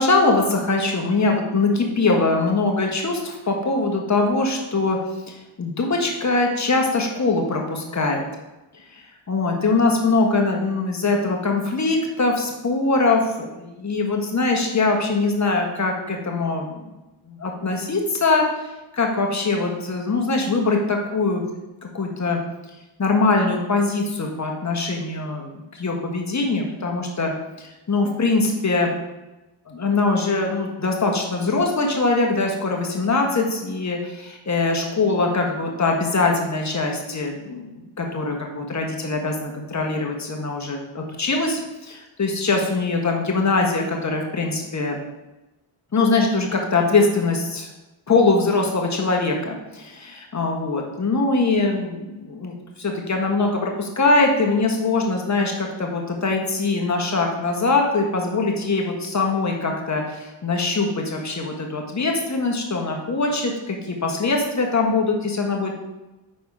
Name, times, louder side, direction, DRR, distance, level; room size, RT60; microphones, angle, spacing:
voice 1, 0.0-5.0 5.3-8.3 9.3-16.9 17.3-18.4 18.9-21.5 21.8-22.4 23.0-27.3 27.6-28.9 29.8-45.0 45.9-47.7 48.1-65.7, left 3 dB, 35° left, 1 dB, 1.5 m, -22 dB
5.4 x 4.2 x 4.9 m, 1.0 s
cardioid pair, 55°, 47 cm